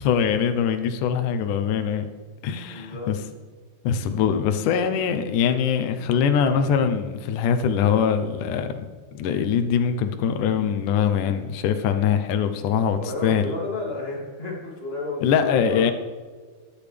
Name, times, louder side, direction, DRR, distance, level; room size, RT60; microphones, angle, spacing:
voice 1, 0.0-2.1 2.4-3.2 3.8-8.8 9.2-13.6 15.2-15.9, left 7 dB, 75° left, 7 dB, 1.9 m, -22 dB
voice 2, 2.5-3.1 13.0-15.9, left 3 dB, 20° left, -3 dB, 2.2 m, -32 dB
20.0 x 10.5 x 3.5 m, 1.5 s
omnidirectional pair, 4.8 m